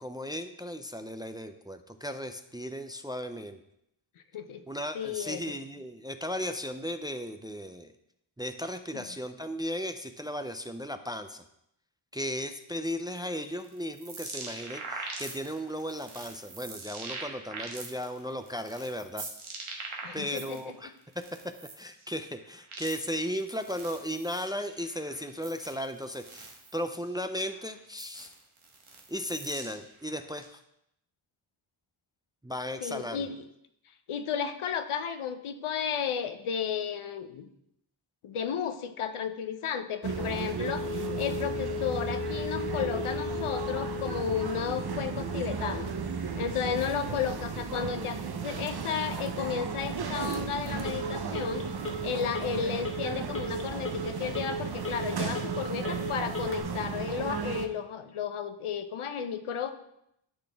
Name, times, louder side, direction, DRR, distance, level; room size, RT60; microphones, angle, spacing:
voice 1, 0.0-3.6 4.7-7.9 8.4-11.4 12.1-19.3 20.1-21.2 21.8-28.3 29.1-30.6 32.4-33.2, equal, 10° right, 8 dB, 0.3 m, -36 dB
voice 2, 4.9-5.6 8.9-9.0 20.0-20.6 32.8-33.4 34.1-37.5 38.2-45.9 46.4-51.6 52.0-59.7, left 7 dB, 90° left, 10 dB, 0.7 m, -33 dB
sound 1, 13.1-20.6 21.0-30.5, right 3 dB, 85° right, 1.4 m, -43 dB
sound 2, 40.0-57.7, right 6 dB, 50° right, 0.7 m, -35 dB
Telephone, 40.6-56.6, left 2 dB, 25° left, 1.2 m, -38 dB
11.5 x 4.2 x 3.4 m, 0.78 s
wide cardioid pair, 85°, 49 cm